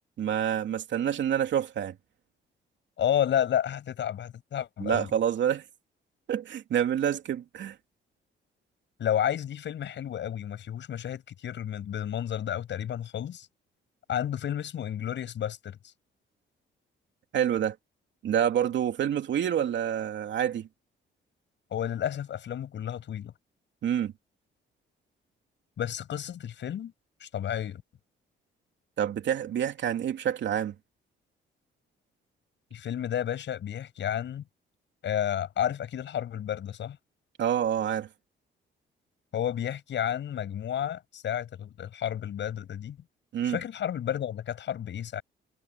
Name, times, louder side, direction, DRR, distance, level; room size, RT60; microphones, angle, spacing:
voice 1, 0.2-1.9 4.8-5.6 6.3-7.8 17.3-17.8 18.2-20.7 23.8-24.1 29.0-30.7 37.4-38.1 43.3-43.6, right 9 dB, 65° right, 2.9 m, -27 dB
voice 2, 3.0-5.1 9.0-13.5 14.1-15.8 21.7-23.3 25.8-26.9 27.2-27.8 32.7-34.4 35.0-37.0 39.3-43.0 43.4-45.2, left 10 dB, 65° left, 7.9 m, -31 dB
cardioid pair, 90°, 20 cm